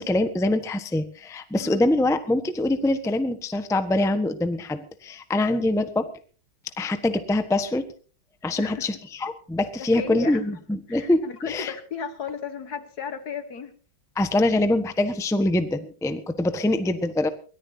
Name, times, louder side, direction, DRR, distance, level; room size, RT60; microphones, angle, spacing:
voice 1, 0.0-6.0 6.8-7.9 8.4-11.7 14.1-17.3, left 1 dB, ahead, 9 dB, 1.0 m, -24 dB
voice 2, 8.6-8.9 9.8-10.4 10.9-13.8, left 6 dB, 55° left, 10 dB, 1.8 m, -34 dB
23.5 x 18.0 x 2.8 m, 0.39 s
omnidirectional pair, 2.2 m